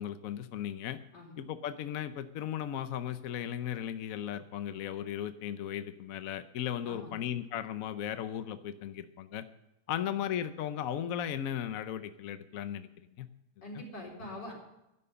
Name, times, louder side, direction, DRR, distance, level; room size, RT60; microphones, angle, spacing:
voice 1, 0.0-1.0 1.4-9.4 9.9-12.9 13.2-13.3, left 10 dB, 65° left, 11 dB, 1.0 m, -36 dB
voice 2, 1.1-1.4 6.8-7.2 9.9-10.2 13.6-14.5, left 1 dB, 80° left, -1 dB, 4.7 m, -44 dB
12.0 x 11.0 x 6.8 m, 0.89 s
omnidirectional pair, 1.8 m